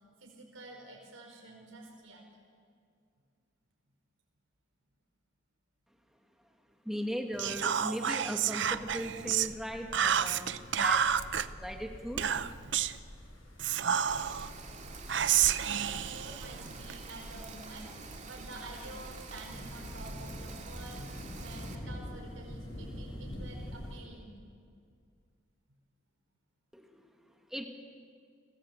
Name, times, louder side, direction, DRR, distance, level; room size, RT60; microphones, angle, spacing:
voice 1, 0.2-2.2 14.7-14.9 15.6-24.4, right 2 dB, 85° right, 0 dB, 4.8 m, -49 dB
voice 2, 6.8-11.1 11.4-12.3 26.7-27.7, equal, ahead, 3 dB, 2.1 m, -38 dB
Whispering, 7.4-9.5 9.9-11.5 12.2-13.0 13.6-14.5 15.1-17.0, right 9 dB, 60° right, 0.6 m, -30 dB
sound 1, 8.7-24.0, equal, 85° left, 7.4 m, -47 dB
Rain, 14.1-21.7, right 2 dB, 35° right, 2.4 m, -46 dB
30.0 x 20.0 x 8.1 m, 2.2 s
head